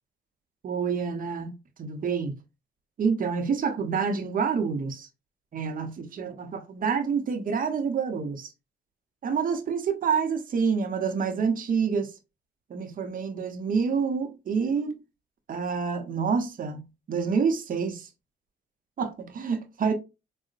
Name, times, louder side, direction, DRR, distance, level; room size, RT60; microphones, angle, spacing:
voice 1, 0.6-2.3 3.0-5.1 5.5-8.5 9.2-12.1 12.7-15.0 15.5-16.8 17.1-18.1 19.0-19.9, right 6 dB, 45° right, 0.7 m, -27 dB
3.8 x 2.0 x 2.4 m
cardioid pair, 90°, 20 cm